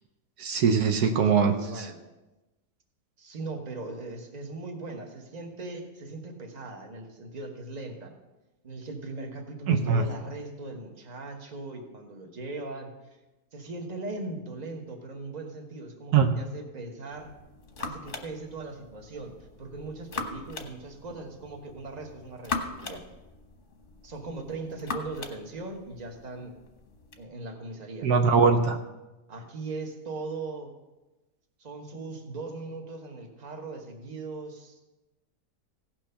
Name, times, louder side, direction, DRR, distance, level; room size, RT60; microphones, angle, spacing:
voice 1, 0.4-1.9 9.7-10.1 16.1-16.4 28.0-28.8, right 5 dB, 75° right, 6 dB, 1.2 m, -22 dB
voice 2, 0.9-2.0 3.2-8.1 8.6-13.2 13.5-17.3 17.8-23.0 24.0-26.6 27.2-28.1 29.3-30.7 31.6-34.8, right 3 dB, 25° right, 3 dB, 1.3 m, -39 dB
sound 1, 17.1-27.2, left 4 dB, 35° left, 1.1 m, -40 dB
16.5 x 6.1 x 5.6 m, 1.1 s
omnidirectional pair, 1.7 m